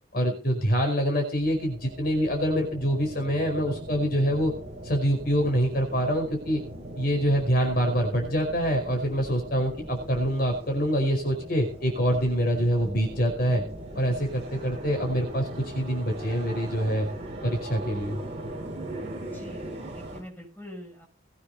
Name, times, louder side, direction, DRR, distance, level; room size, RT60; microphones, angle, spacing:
voice 1, 0.1-4.5 4.8-6.6 7.0-13.6 14.0-17.1 17.4-18.2, equal, 50° left, 2 dB, 5.2 m, -25 dB
sound 1, 1.3-20.2, right 1 dB, 30° right, 5.7 m, -40 dB
voice 2, 19.1-21.1, left 1 dB, 10° left, 0 dB, 7.1 m, -45 dB
20.5 x 9.7 x 4.2 m, 0.37 s
head